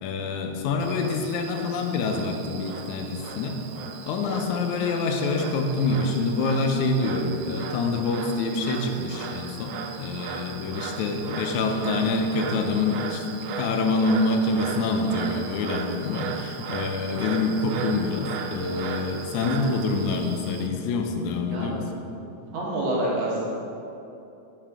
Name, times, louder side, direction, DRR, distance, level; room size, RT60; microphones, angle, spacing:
voice 1, 0.0-3.6 4.1-13.2 13.6-21.9, left 3 dB, 85° left, 3 dB, 2.1 m, -26 dB
Frog, 0.8-20.7, right 6 dB, 90° right, 1.3 m, -37 dB
voice 2, 22.5-23.4, right 1 dB, 65° right, -4 dB, 2.5 m, -26 dB
7.4 x 5.7 x 4.9 m, 2.8 s
omnidirectional pair, 3.4 m